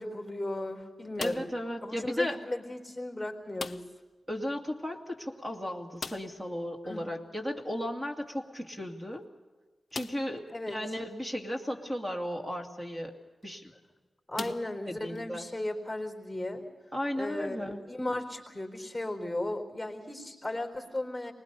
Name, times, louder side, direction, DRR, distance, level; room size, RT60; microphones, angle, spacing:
voice 1, 0.0-1.5 1.8-3.9 6.8-7.0 10.5-10.8 14.3-16.6 17.2-21.3, left 1 dB, ahead, 4 dB, 4.1 m, -35 dB
sound 1, 1.1-1.7 3.5-4.1 4.4-4.5 4.8-4.9 6.0-6.5 8.3-8.4 9.0-9.1 9.9-10.4 11.1-11.2 13.2-13.5 14.3-15.2, left 4 dB, 50° left, 0.6 m, -41 dB
voice 2, 1.2-2.4 4.3-9.2 9.9-13.2 13.4-13.7 14.4-14.5 14.9-15.5 16.9-17.8, equal, 15° right, 3 dB, 2.4 m, -35 dB
24.5 x 20.0 x 6.9 m, 1.3 s
wide cardioid pair, 100°, 0 cm